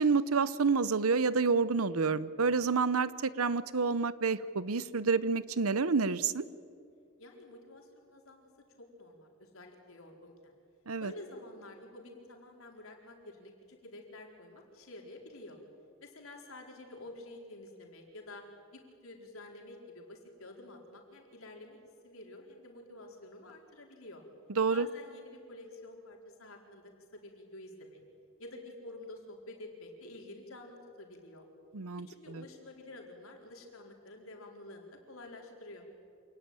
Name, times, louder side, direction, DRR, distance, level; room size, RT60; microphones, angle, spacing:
voice 1, 0.0-6.4 10.9-11.1 24.6-24.9 31.7-32.0, right 4 dB, 80° right, 16 dB, 0.8 m, -28 dB
voice 2, 7.2-8.5 8.8-10.5 11.0-15.6 16.0-18.4 18.7-24.2 24.7-28.0 28.4-31.4 32.1-35.9, left 2 dB, 70° left, 1 dB, 4.4 m, -50 dB
27.0 x 19.0 x 9.1 m, 2.3 s
head